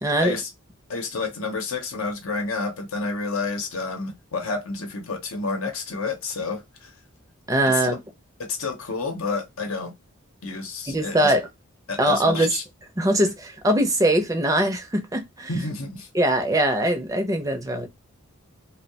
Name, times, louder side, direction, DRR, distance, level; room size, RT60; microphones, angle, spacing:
voice 1, 0.0-0.3 7.5-8.0 10.9-11.5 12.0-12.5 13.0-15.5 16.1-17.9, right 1 dB, 15° right, 0.5 m, -22 dB
voice 2, 0.9-6.9 7.7-8.0 8.4-9.9 10.4-11.3 11.9-12.6 15.5-16.1, left 3 dB, 80° left, 0.8 m, -29 dB
2.6 x 2.1 x 2.7 m
head